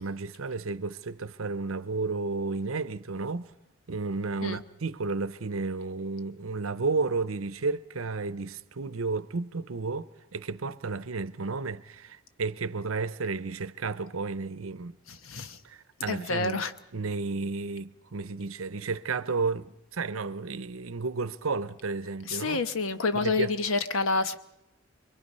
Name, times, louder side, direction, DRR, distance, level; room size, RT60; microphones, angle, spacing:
voice 1, 0.0-3.5 3.9-15.0 15.6-16.7 16.9-22.6 23.1-23.5, right 4 dB, 85° right, 0.8 m, -32 dB
voice 2, 15.1-15.6 16.1-16.7 22.3-24.4, left 3 dB, 80° left, 1.1 m, -28 dB
26.5 x 22.0 x 5.5 m
head